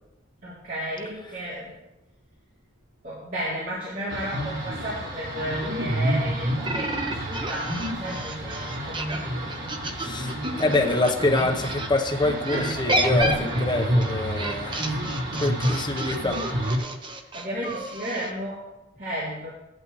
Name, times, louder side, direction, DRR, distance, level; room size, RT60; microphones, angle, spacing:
voice 1, 0.4-1.7 3.0-10.7 12.5-12.9 17.3-18.6 19.0-19.5, equal, 45° right, -9 dB, 3.4 m, -33 dB
sound 1, 4.1-16.8, equal, 80° right, 3.7 m, -29 dB
sound 2, 6.6-11.9 12.4-18.3, right 1 dB, 25° right, 0.9 m, -31 dB
voice 2, 10.0-10.3 10.6-15.0 15.4-16.4, left 2 dB, 25° left, 2 dB, 1.1 m, -25 dB
15.5 x 11.0 x 3.3 m, 0.96 s
head